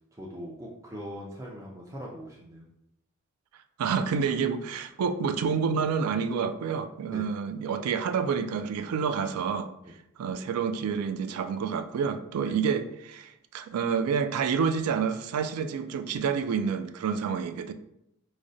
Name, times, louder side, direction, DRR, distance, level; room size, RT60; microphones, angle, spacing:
voice 1, 0.1-2.6 7.1-7.3 9.8-9.9 12.4-12.5, equal, 15° right, -3 dB, 0.4 m, -41 dB
voice 2, 3.8-9.7 10.2-17.7, right 6 dB, 85° right, 10 dB, 0.3 m, -28 dB
4.8 x 2.0 x 2.6 m, 0.79 s
head